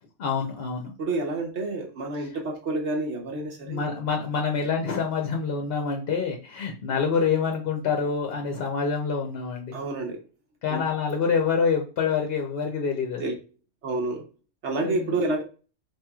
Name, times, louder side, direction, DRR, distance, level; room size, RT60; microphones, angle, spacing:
voice 1, 0.2-0.9 2.2-2.3 3.7-9.8 10.6-13.3 14.8-15.2, left 5 dB, 60° left, 2 dB, 0.8 m, -26 dB
voice 2, 1.0-4.0 9.7-10.2 10.7-10.9 13.2-13.3 13.8-14.2 14.6-15.4, right 2 dB, 70° right, 2 dB, 1.1 m, -29 dB
4.7 x 2.9 x 2.3 m, 0.35 s
omnidirectional pair, 1.2 m